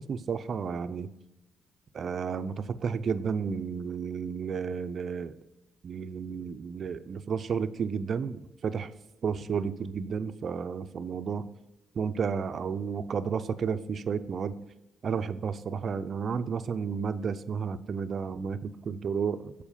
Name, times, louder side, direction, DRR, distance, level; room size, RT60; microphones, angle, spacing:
voice 1, 0.1-1.1 1.9-5.3 5.8-8.9 9.2-11.4 11.9-14.6 15.0-19.5, right 6 dB, 50° right, 12 dB, 0.4 m, -32 dB
7.1 x 4.4 x 5.5 m, 0.95 s
cardioid pair, 90°, 0 cm